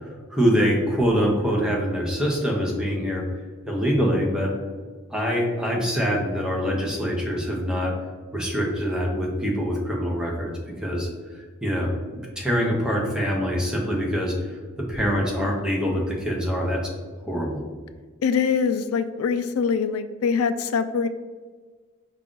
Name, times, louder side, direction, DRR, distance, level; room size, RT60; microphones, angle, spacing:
voice 1, 0.0-3.2 3.7-4.5 5.1-7.9 8.3-14.6 14.9-16.8 17.3-17.6, equal, 5° right, -2 dB, 0.7 m, -24 dB
voice 2, 18.2-21.1, left 6 dB, 75° left, 10 dB, 0.3 m, -23 dB
4.9 x 2.4 x 3.7 m, 1.5 s
head